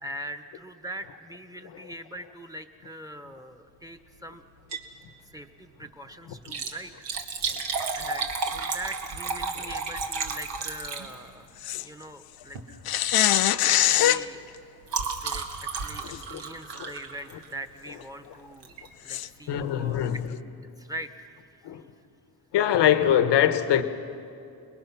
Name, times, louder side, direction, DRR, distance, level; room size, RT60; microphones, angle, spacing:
voice 1, 0.0-4.4 5.3-7.1 7.9-11.5 11.8-12.8 13.7-14.4 15.2-18.7 19.0-20.0 20.5-21.3, right 1 dB, 10° right, 1.1 m, -42 dB
Liquid, 4.5-5.0 5.3-5.4 6.3-11.5 12.4-12.7 13.1-13.3 13.6-17.7 18.6-18.9 19.4-19.5 19.7-19.8, right 4 dB, 85° right, 2.1 m, -33 dB
sound 1, 11.6-11.8 12.8-14.2 16.1-16.2 16.8-16.9 19.1-19.3, left 12 dB, 60° left, 0.7 m, -22 dB
voice 2, 19.5-20.2 21.6-21.8 22.5-23.8, left 10 dB, 85° left, 1.3 m, -23 dB
29.5 x 21.0 x 6.0 m
cardioid pair, 110°, 41 cm